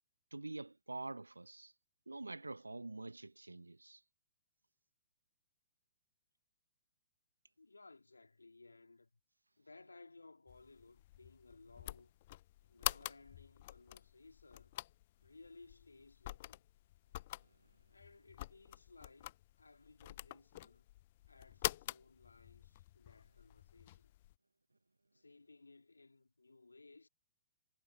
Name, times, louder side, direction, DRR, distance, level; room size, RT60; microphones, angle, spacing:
voice 1, 0.3-1.7 2.1-4.0, right 2 dB, 80° right, 0.9 m, -46 dB
voice 2, 7.6-9.2 9.6-12.2 12.7-14.8 15.2-16.7 17.9-20.9 21.3-24.1 25.1-27.1, left 3 dB, 80° left, 3.9 m, -61 dB
sound 1, 10.5-24.3, left 16 dB, 40° left, 0.4 m, -47 dB
figure-of-eight pair, 115°, 0 cm